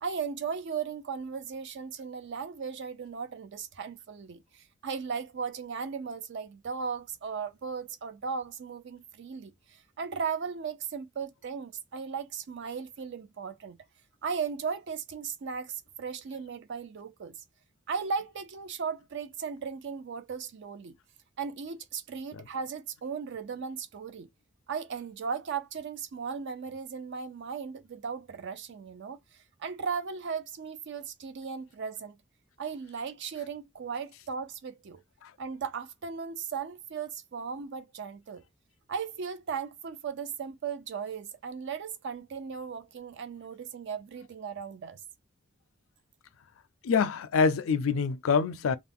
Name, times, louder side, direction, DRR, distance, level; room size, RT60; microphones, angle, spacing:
voice 1, 0.0-13.8 14.2-17.3 17.9-20.9 21.4-24.3 24.7-32.2 32.6-35.0 35.4-38.4 38.9-45.0, right 6 dB, 60° right, 0.4 m, -36 dB
voice 2, 46.8-48.8, left 5 dB, 80° left, 0.4 m, -26 dB
2.4 x 2.0 x 3.4 m
head